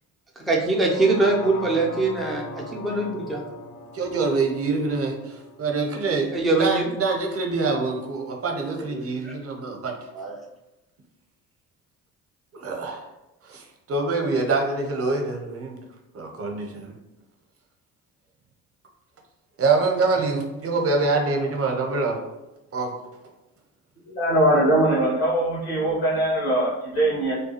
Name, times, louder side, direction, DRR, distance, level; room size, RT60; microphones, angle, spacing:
voice 1, 0.4-3.4 6.3-6.9 8.9-9.3 10.1-10.3, right 3 dB, ahead, -2 dB, 0.3 m, -23 dB
sound 1, 0.7-6.8 7.2-7.3, left 1 dB, 50° left, 0.5 m, -40 dB
voice 2, 3.9-6.3 6.5-9.9 12.5-13.0 13.4-15.8 16.1-17.0 19.6-22.2 22.7-22.9, right 3 dB, 30° right, 2 dB, 0.6 m, -25 dB
voice 3, 24.2-27.3, right 1 dB, 80° left, -7 dB, 0.9 m, -21 dB
2.3 x 2.2 x 2.8 m, 0.98 s
hypercardioid pair, 50°, 46 cm